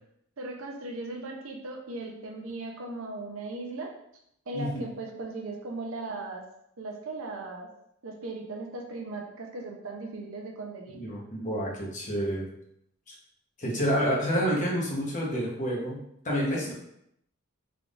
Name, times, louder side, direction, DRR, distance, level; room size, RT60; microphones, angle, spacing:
voice 1, 0.4-3.9 4.5-6.4 6.8-7.7 8.0-11.0 16.6-16.7, right 2 dB, 60° right, 1 dB, 0.6 m, -38 dB
voice 2, 10.9-12.4 13.1-13.2 13.6-16.7, equal, 35° left, -3 dB, 0.9 m, -29 dB
3.6 x 3.5 x 2.5 m, 0.75 s
head